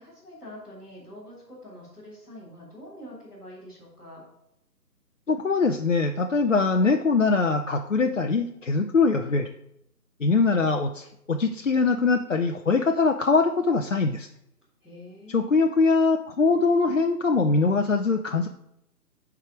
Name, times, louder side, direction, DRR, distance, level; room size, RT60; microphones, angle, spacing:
voice 1, 0.0-4.2 14.8-15.7, equal, ahead, -13 dB, 1.2 m, -45 dB
voice 2, 5.3-9.5 10.2-14.3 15.3-18.5, left 4 dB, 50° left, 4 dB, 0.5 m, -22 dB
7.9 x 4.8 x 4.8 m, 0.81 s
figure-of-eight pair, 150°, 50 cm